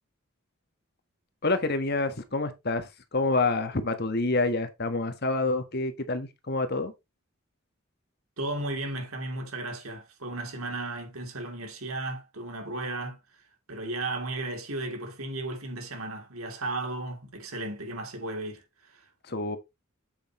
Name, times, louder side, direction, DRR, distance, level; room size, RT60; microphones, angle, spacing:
voice 1, 1.4-6.9 19.2-19.6, left 3 dB, 50° left, 1.4 m, -27 dB
voice 2, 8.4-13.4 13.7-19.1, right 2 dB, 90° right, 3.1 m, -35 dB
8.1 x 7.9 x 3.1 m
head